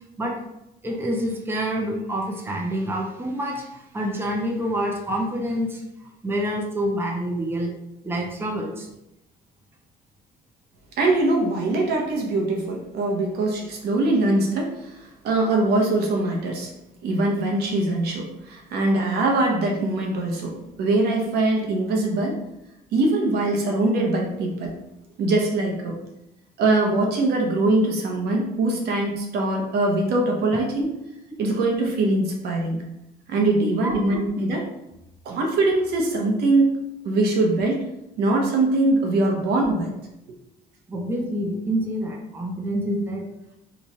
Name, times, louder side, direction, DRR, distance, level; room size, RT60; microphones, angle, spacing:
voice 1, 0.8-5.8 6.2-7.7 8.0-8.9 33.6-34.2 39.4-39.5 40.9-43.3, equal, 15° right, 0 dB, 0.6 m, -27 dB
voice 2, 11.0-16.7 17.0-22.4 22.9-24.8 25.2-26.0 26.6-30.9 31.4-32.8 33.3-34.7 35.2-36.7 37.0-37.8 38.2-39.9, right 2 dB, 70° right, 0 dB, 0.9 m, -22 dB
3.1 x 2.4 x 4.1 m, 0.86 s
cardioid pair, 110°, 17 cm